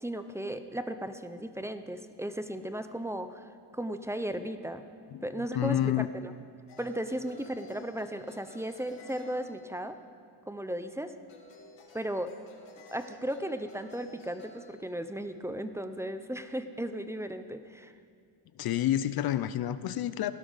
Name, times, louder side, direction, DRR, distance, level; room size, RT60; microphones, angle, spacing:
voice 1, 0.0-4.8 5.2-6.3 6.8-10.0 10.5-11.1 11.9-12.3 12.9-17.9, right 1 dB, 5° right, 9 dB, 0.4 m, -36 dB
voice 2, 5.5-6.1 18.6-20.3, left 12 dB, 55° left, 14 dB, 0.5 m, -29 dB
sound 1, 6.7-10.0 11.3-14.7, left 3 dB, 75° left, 2.3 m, -54 dB
17.5 x 12.0 x 4.0 m, 2.3 s
cardioid pair, 120°, 46 cm